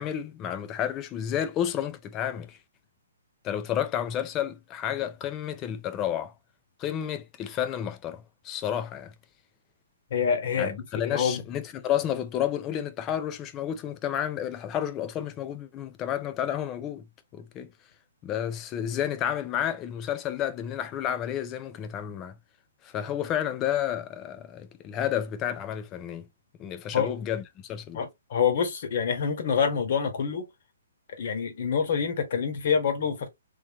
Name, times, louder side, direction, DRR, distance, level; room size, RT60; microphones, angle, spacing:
voice 1, 0.0-2.6 3.4-6.3 6.8-9.1 10.6-17.0 17.3-17.7 18.2-22.3 22.8-26.3 26.6-28.0, left 10 dB, 20° left, 0.5 m, -31 dB
voice 2, 10.1-11.4 26.9-27.1 27.9-30.4 31.2-33.3, left 6 dB, 50° left, 1.4 m, -26 dB
3.6 x 3.0 x 2.9 m
hypercardioid pair, 155°, 0 cm